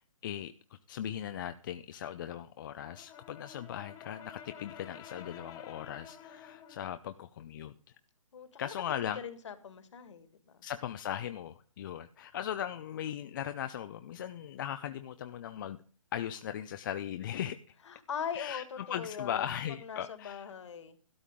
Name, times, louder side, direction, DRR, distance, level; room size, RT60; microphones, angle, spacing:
voice 1, 0.2-0.5 0.9-7.7 8.6-9.2 10.6-15.8 16.1-17.6 18.3-20.5, left 10 dB, 35° left, 10 dB, 0.6 m, -38 dB
Brass instrument, 2.8-7.0, left 8 dB, 20° left, 1.7 m, -50 dB
voice 2, 8.3-8.7 9.0-10.6 17.9-19.4 19.8-21.0, left 7 dB, 55° left, 10 dB, 2.1 m, -41 dB
12.5 x 12.5 x 3.8 m, 0.43 s
hypercardioid pair, 145°, 18 cm